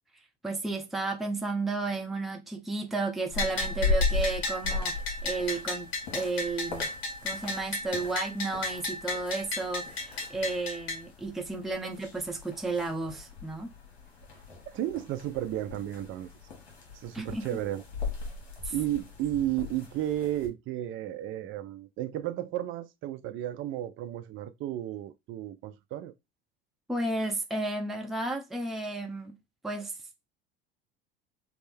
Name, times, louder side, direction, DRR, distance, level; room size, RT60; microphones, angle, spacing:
voice 1, 0.4-4.9 5.2-6.9 7.2-13.7 17.1-17.4 18.6-18.7 26.9-29.4 29.6-29.9, right 3 dB, ahead, 0.7 m, -33 dB
sound 1, 3.3-20.5, left 3 dB, 80° left, 1.2 m, -37 dB
Bell, 3.4-11.0, left 3 dB, 60° left, 1.5 m, -34 dB
voice 2, 14.3-16.3 16.9-17.8 18.7-26.1, right 13 dB, 40° right, 0.5 m, -33 dB
3.4 x 2.0 x 3.4 m
hypercardioid pair, 70°, 32 cm